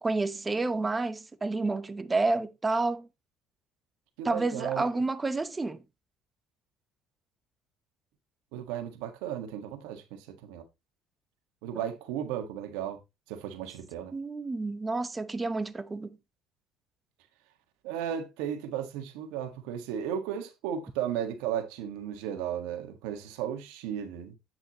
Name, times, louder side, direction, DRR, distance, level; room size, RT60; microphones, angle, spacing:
voice 1, 0.0-3.1 4.2-5.8 14.1-16.2, right 3 dB, 20° right, 0.7 m, -29 dB
voice 2, 4.2-4.8 8.5-10.6 11.6-13.0 13.3-14.1 17.8-24.3, right 9 dB, 85° right, 1.5 m, -35 dB
8.8 x 5.7 x 2.9 m
supercardioid pair, 100°, 0 cm